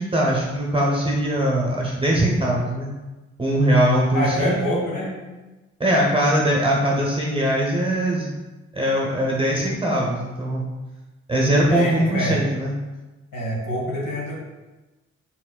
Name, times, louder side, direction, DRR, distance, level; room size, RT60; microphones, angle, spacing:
voice 1, 0.0-2.9 3.4-4.6 5.8-8.3 8.7-10.6 11.3-12.7, right 1 dB, 15° right, -3 dB, 0.9 m, -21 dB
voice 2, 4.1-5.1 11.7-12.4 13.3-14.4, left 1 dB, 70° left, -5 dB, 1.4 m, -25 dB
4.5 x 3.7 x 2.3 m, 1.2 s
hypercardioid pair, 40°, 33 cm